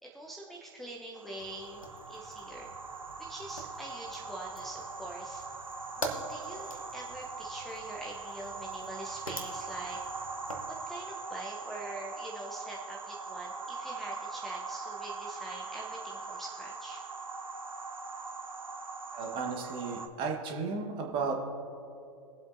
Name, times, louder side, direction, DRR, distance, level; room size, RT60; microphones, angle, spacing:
voice 1, 0.0-1.8 2.1-2.7 3.2-5.4 6.0-10.0 10.7-17.0, right 2 dB, ahead, -4 dB, 0.9 m, -44 dB
sound 1, 1.1-20.1, right 4 dB, 80° right, 0.8 m, -41 dB
Fire, 1.4-10.7, right 1 dB, 90° left, 1.3 m, -45 dB
voice 2, 19.1-21.5, right 4 dB, 30° right, 1 dB, 1.5 m, -34 dB
22.0 x 7.8 x 2.7 m, 2.7 s
figure-of-eight pair, 100°, 17 cm